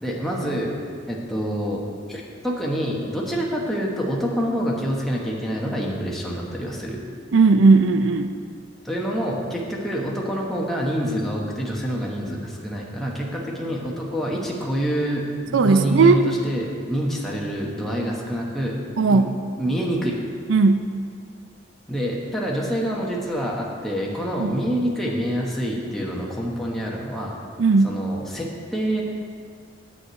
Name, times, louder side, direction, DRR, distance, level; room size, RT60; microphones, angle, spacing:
voice 1, 0.0-0.7 1.1-1.8 2.1-7.0 8.8-18.8 19.1-19.2 19.6-20.2 21.9-27.4 27.8-29.0, equal, ahead, -4 dB, 1.2 m, -26 dB
voice 2, 7.3-8.3 15.5-16.2 19.0-19.3 20.5-20.9 24.4-24.6 27.6-28.0, right 4 dB, 75° right, 9 dB, 0.4 m, -17 dB
9.5 x 4.9 x 7.9 m, 2.1 s
head